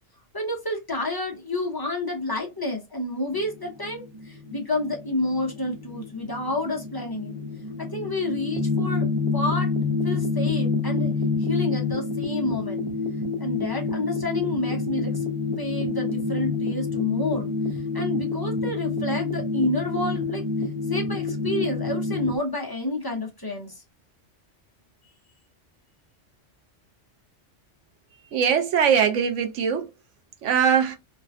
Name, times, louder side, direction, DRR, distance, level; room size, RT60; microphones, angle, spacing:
voice 1, 0.3-7.4 7.8-9.7 10.0-11.1 11.4-12.9 13.4-15.1 15.6-17.5 17.9-20.4 20.9-23.7, left 2 dB, 20° left, 0.7 m, -29 dB
sound 1, 3.3-22.4, left 3 dB, 35° right, 0.6 m, -28 dB
voice 2, 28.3-29.9 30.4-31.0, right 7 dB, 80° right, 1.0 m, -21 dB
3.2 x 2.2 x 2.5 m
omnidirectional pair, 1.2 m